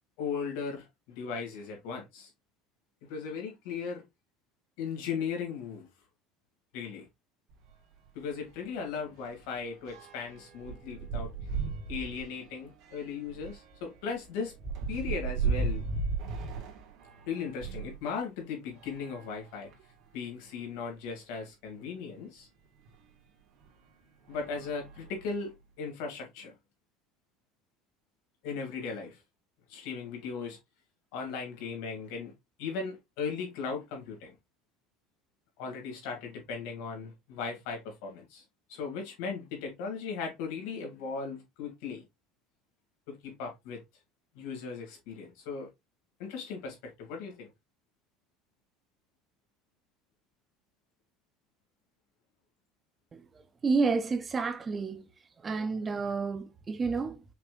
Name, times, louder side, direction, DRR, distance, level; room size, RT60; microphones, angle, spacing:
voice 1, 0.2-2.3 3.1-4.0 4.8-5.9 6.7-7.1 8.1-11.3 11.9-14.5 14.9-15.9 17.3-19.7 20.1-22.5 24.3-26.5 28.4-29.2 29.7-30.6 31.1-32.3 32.6-34.3 35.6-38.4 38.7-42.0 43.1-43.8 44.3-45.7 46.2-47.5, left 5 dB, 75° left, 2.4 m, -37 dB
sound 1, 7.5-7.7 8.0-8.1 8.5-18.0 18.7-20.0 20.7-20.8 21.1-21.2 22.9-23.0 23.6-23.8 24.3-25.5, right 4 dB, 60° right, 1.7 m, -37 dB
voice 2, 53.6-55.1 55.4-57.2, right 4 dB, 25° right, 0.7 m, -30 dB
5.7 x 3.4 x 2.5 m
supercardioid pair, 130°, 0 cm